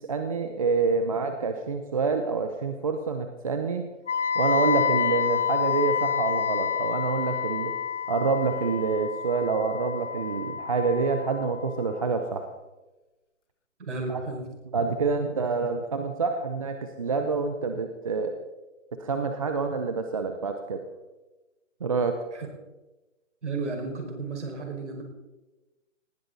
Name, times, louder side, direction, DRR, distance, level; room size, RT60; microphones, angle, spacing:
voice 1, 0.1-3.8 4.3-7.7 8.1-12.5 14.1-14.2 14.7-18.3 19.0-20.8 21.8-22.2, right 4 dB, 25° right, 6 dB, 0.8 m, -27 dB
Wind instrument woodwind instrument, 4.1-12.0, left 7 dB, 65° left, 1.0 m, -28 dB
voice 2, 13.8-14.5 22.3-22.5 23.4-25.0, right 3 dB, 60° right, 2 dB, 5.5 m, -33 dB
19.0 x 16.0 x 4.1 m, 1.1 s
hypercardioid pair, 165°, 39 cm